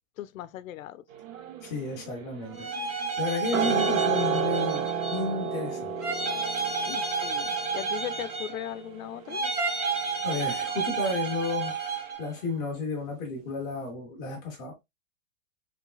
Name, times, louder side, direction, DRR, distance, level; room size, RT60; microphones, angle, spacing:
voice 1, 0.2-1.0 6.9-9.4, left 12 dB, 85° left, 0.6 m, -38 dB
sound 1, 1.1-11.5 11.7-11.8, right 6 dB, 80° right, 1.0 m, -33 dB
voice 2, 1.6-6.0 6.6-6.7 10.2-14.7, left 3 dB, 10° left, 0.3 m, -33 dB
sound 2, 2.5-5.4 6.0-8.8 9.3-12.2, right 5 dB, 25° right, 1.2 m, -31 dB
5.0 x 3.3 x 2.2 m
supercardioid pair, 155°, 39 cm